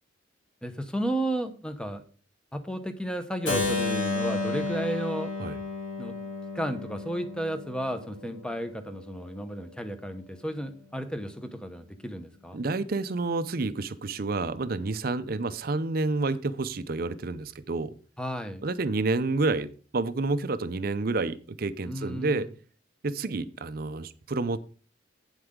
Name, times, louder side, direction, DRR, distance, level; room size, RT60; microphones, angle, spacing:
voice 1, 0.6-2.0 2.5-5.3 6.0-6.2 6.5-12.6 18.2-18.6 21.9-22.5, right 1 dB, 5° left, 8 dB, 0.9 m, -33 dB
Keyboard (musical), 3.5-9.3, left 3 dB, 90° left, 3.6 m, -32 dB
voice 2, 12.5-17.9 18.6-22.5 23.0-24.6, right 3 dB, 50° right, 13 dB, 0.6 m, -29 dB
8.9 x 7.9 x 3.7 m, 0.39 s
head